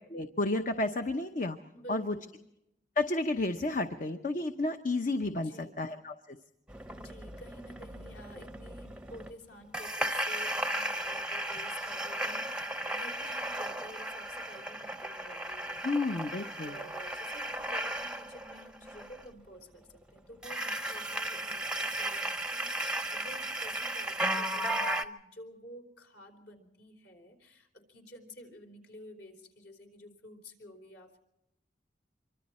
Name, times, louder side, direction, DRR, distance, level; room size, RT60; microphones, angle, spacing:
voice 1, 0.1-1.6 1.9-2.1 3.0-6.4 15.8-16.8, left 2 dB, 45° left, 7 dB, 0.9 m, -31 dB
voice 2, 1.7-2.3 5.3-5.8 6.9-31.2, equal, 65° left, 3 dB, 4.1 m, -51 dB
sound 1, 6.7-9.3 9.7-19.2 20.4-25.0, right 1 dB, 5° right, 0.7 m, -35 dB
25.5 x 24.0 x 4.3 m, 0.83 s
head